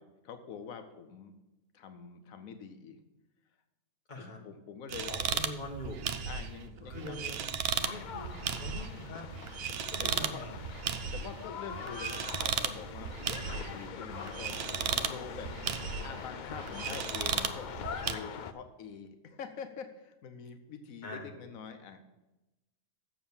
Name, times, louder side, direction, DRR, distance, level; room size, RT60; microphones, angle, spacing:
voice 1, 0.0-1.4 1.7-3.0 4.2-5.5 6.3-7.5 10.0-10.4 11.1-14.7 15.0-15.5 16.0-22.0, left 6 dB, 85° left, 8 dB, 1.2 m, -46 dB
voice 2, 4.1-4.4 5.1-6.1 6.8-9.3 9.9-10.6 11.8-12.0 21.0-21.3, left 1 dB, 35° left, 0 dB, 1.7 m, -44 dB
sound 1, 4.9-18.1, right 7 dB, 60° right, 0.7 m, -36 dB
sound 2, 7.8-18.5, left 7 dB, 70° left, 0.4 m, -43 dB
7.4 x 7.0 x 7.1 m, 0.98 s
omnidirectional pair, 1.4 m